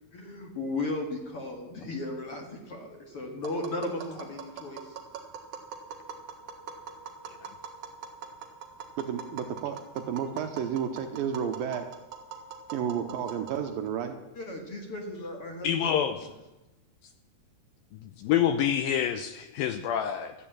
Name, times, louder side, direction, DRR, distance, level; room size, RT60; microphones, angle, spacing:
voice 1, 0.1-5.0 14.4-15.9, left 2 dB, 45° left, 2 dB, 2.0 m, -35 dB
Tap, 3.4-13.9, right 6 dB, 55° right, 2.4 m, -43 dB
voice 2, 9.0-11.9 12.7-14.1, right 8 dB, 75° right, 6 dB, 2.3 m, -31 dB
voice 3, 15.6-16.3 17.9-20.3, left 9 dB, 75° left, 8 dB, 2.2 m, -27 dB
13.5 x 9.0 x 8.7 m, 1.0 s
omnidirectional pair, 4.7 m